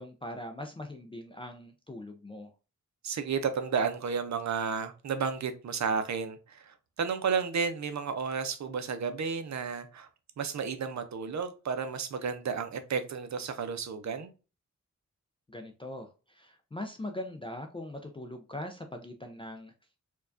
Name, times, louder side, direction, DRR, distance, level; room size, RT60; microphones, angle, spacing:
voice 1, 0.0-2.5 15.5-19.7, left 1 dB, 20° left, 0.3 m, -41 dB
voice 2, 3.0-10.1 10.4-14.3, right 5 dB, 65° right, 0.6 m, -32 dB
4.5 x 2.3 x 2.5 m
wide cardioid pair, 145°, 30 cm